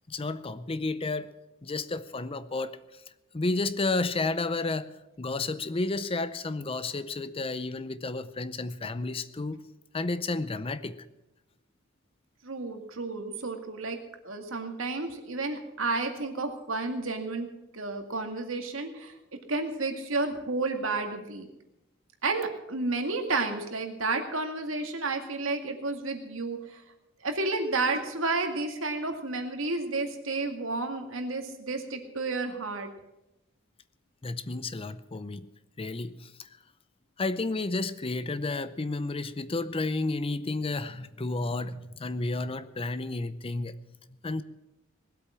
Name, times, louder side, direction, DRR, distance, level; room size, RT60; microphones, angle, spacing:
voice 1, 0.1-1.3 1.6-3.0 3.3-9.7 9.9-11.0 34.2-35.5 35.8-36.5 37.2-43.7 44.2-44.4, left 3 dB, 30° left, 14 dB, 0.6 m, -31 dB
voice 2, 12.4-14.0 14.2-17.5 17.7-19.1 19.5-21.5 22.2-26.8 27.2-32.9, right 3 dB, 80° right, 5 dB, 2.1 m, -31 dB
19.0 x 8.3 x 7.4 m, 0.93 s
head